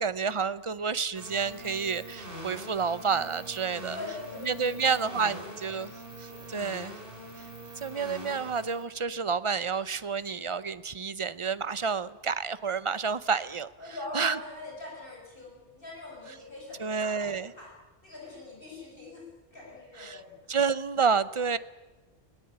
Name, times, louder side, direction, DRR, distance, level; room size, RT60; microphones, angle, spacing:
voice 1, 0.0-4.0 4.4-5.9 6.2-6.9 7.8-13.7 14.1-14.4 16.8-17.5 20.0-20.2 20.5-21.6, right 5 dB, 35° right, 15 dB, 0.7 m, -29 dB
sound 1, 1.1-8.8, right 1 dB, 60° right, 4.9 m, -44 dB
voice 2, 3.9-5.4 6.3-6.8 13.8-17.7 18.0-19.2 19.5-20.4, left 2 dB, 60° left, -3 dB, 6.8 m, -43 dB
20.5 x 19.0 x 8.8 m, 1.2 s
omnidirectional pair, 1.1 m